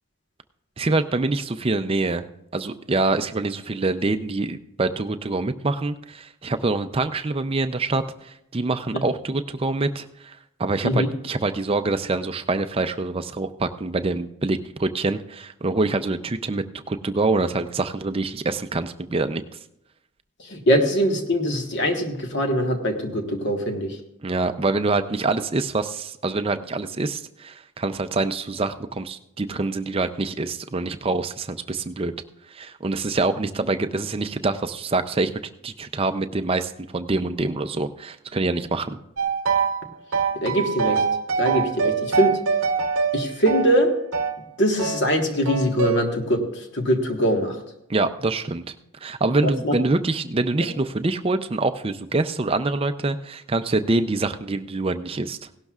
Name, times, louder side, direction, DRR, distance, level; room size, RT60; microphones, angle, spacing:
voice 1, 0.8-2.2 2.5-19.4 24.2-32.1 32.5-35.3 35.6-39.0 47.9-48.6 49.0-55.5, right 3 dB, 25° right, 9 dB, 0.5 m, -25 dB
voice 2, 20.4-24.0 40.4-41.0 41.4-42.4 43.1-43.9 44.6-47.6 49.4-49.7 50.6-50.7, equal, 50° left, 3 dB, 1.4 m, -22 dB
sound 1, 39.2-39.8 40.1-44.4 44.8-45.0 45.5-46.0, right 5 dB, 65° right, 0.8 m, -24 dB
17.0 x 12.0 x 2.4 m, 0.81 s
head